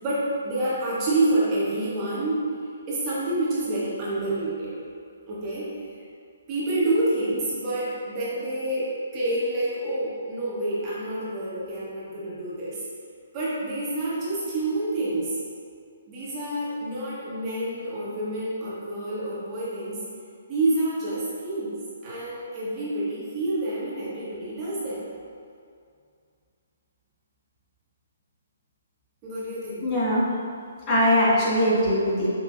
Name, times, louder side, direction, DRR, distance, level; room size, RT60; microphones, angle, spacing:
voice 1, 0.0-2.5 2.9-4.8 5.3-5.7 5.9-6.0 6.5-12.8 13.3-15.3 16.1-20.0 20.5-21.8 22.0-25.1 29.2-29.8, right 1 dB, 25° right, -9 dB, 1.1 m, -28 dB
voice 2, 29.8-30.2 30.9-32.3, equal, 30° left, -8 dB, 1.1 m, -21 dB
5.4 x 2.6 x 2.5 m, 2.3 s
figure-of-eight pair, 135°, 0 cm